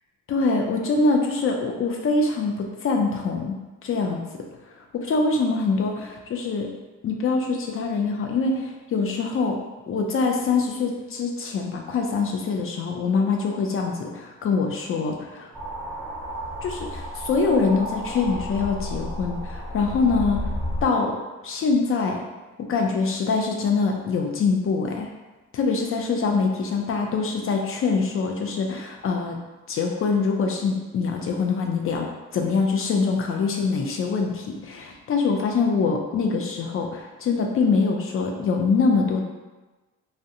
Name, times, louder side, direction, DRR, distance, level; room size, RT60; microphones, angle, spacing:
voice 1, 0.3-4.2 4.9-6.7 7.0-9.6 9.9-15.5 16.6-20.4 20.8-21.2 21.4-22.2 22.7-25.1 25.5-29.4 29.7-32.1 32.3-39.2, left 4 dB, 45° left, 2 dB, 0.4 m, -24 dB
sound 1, 15.5-20.9, equal, 5° left, 0.9 m, -32 dB
2.5 x 2.1 x 2.7 m, 1.2 s
cardioid pair, 90°, 30 cm